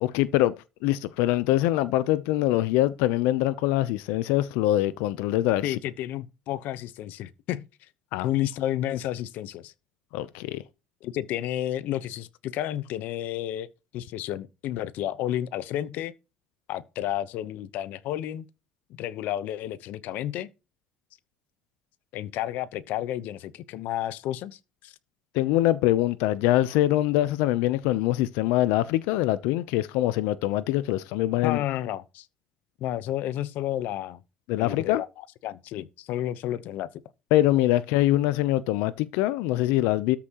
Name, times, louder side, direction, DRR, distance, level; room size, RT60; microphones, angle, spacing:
voice 1, 0.0-0.6 0.8-5.8 8.1-8.3 10.1-10.6 25.3-31.6 34.5-35.0 37.3-40.2, left 15 dB, 90° left, 0.7 m, -24 dB
voice 2, 5.6-7.7 8.2-9.7 11.0-13.7 13.9-16.1 16.7-18.5 19.0-20.5 22.1-24.9 31.4-32.3 32.8-34.2 34.5-36.9, left 12 dB, 60° left, 1.0 m, -31 dB
13.5 x 10.0 x 3.0 m
cardioid pair, 155°, 3 cm